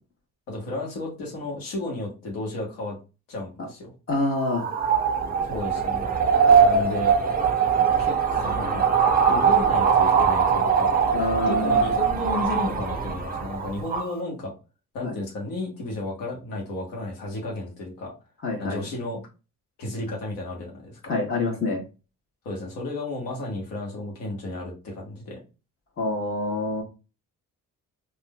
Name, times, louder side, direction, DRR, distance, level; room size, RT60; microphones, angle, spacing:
voice 1, 0.5-3.0 3.3-3.9 5.4-6.1 6.5-7.1 8.0-8.9 9.3-10.9 11.5-14.5 14.9-18.1 18.6-19.2 19.8-21.1 22.4-25.4, left 2 dB, 85° left, -1 dB, 1.2 m, -33 dB
voice 2, 4.1-4.7 11.1-11.9 15.0-15.1 18.4-18.8 21.1-21.8 26.0-26.8, left 2 dB, 40° left, 0 dB, 1.4 m, -26 dB
sound 1, 4.4-14.1, right 6 dB, 25° right, 0.7 m, -21 dB
3.5 x 2.5 x 2.2 m, 0.31 s
cardioid pair, 80°, 33 cm